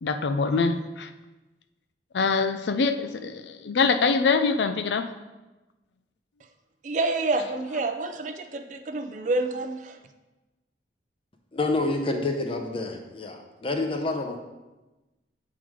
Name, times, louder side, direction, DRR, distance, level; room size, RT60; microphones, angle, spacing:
voice 1, 0.0-1.1 2.1-5.0, left 4 dB, 75° left, 9 dB, 0.4 m, -24 dB
voice 2, 6.8-10.0, right 2 dB, 45° right, 8 dB, 0.4 m, -28 dB
voice 3, 11.5-14.4, left 2 dB, 30° left, 4 dB, 0.7 m, -28 dB
7.5 x 3.8 x 4.7 m, 1.1 s
head